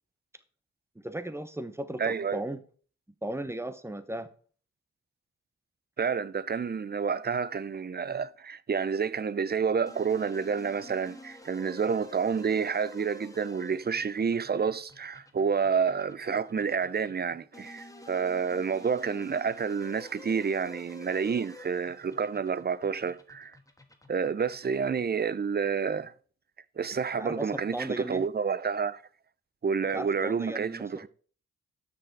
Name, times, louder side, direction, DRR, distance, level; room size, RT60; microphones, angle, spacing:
voice 1, 0.9-2.6 3.2-4.3 27.2-28.3 29.9-31.1, right 1 dB, 10° right, 1.0 m, -36 dB
voice 2, 2.0-2.4 6.0-23.6 24.1-26.1 26.8-29.0 29.6-31.1, right 6 dB, 35° right, 0.6 m, -29 dB
sound 1, 9.9-25.2, left 3 dB, 10° left, 1.4 m, -51 dB
6.7 x 6.3 x 4.6 m
supercardioid pair, 45°, 30 cm